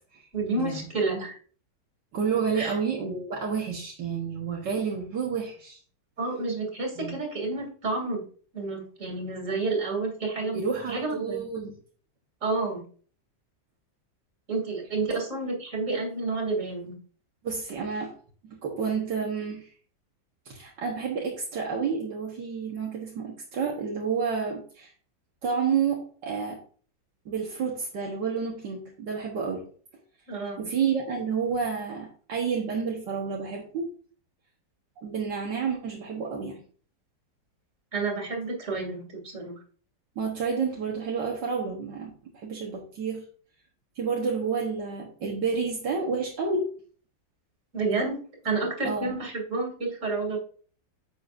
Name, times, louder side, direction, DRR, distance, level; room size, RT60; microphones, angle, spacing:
voice 1, 0.3-1.4 2.6-2.7 6.2-8.2 8.5-11.4 12.4-12.8 14.5-16.9 30.3-30.7 37.9-39.5 47.7-50.4, right 3 dB, 40° right, 1 dB, 3.1 m, -30 dB
voice 2, 2.1-5.8 7.0-7.2 10.4-11.8 17.4-18.1 18.4-19.7 20.5-24.9 25.4-26.6 27.3-29.7 30.6-33.9 35.0-36.6 40.2-43.2 44.0-46.7 48.8-49.2, right 5 dB, 70° right, -1 dB, 1.9 m, -30 dB
9.5 x 7.8 x 2.6 m, 0.43 s
omnidirectional pair, 2.0 m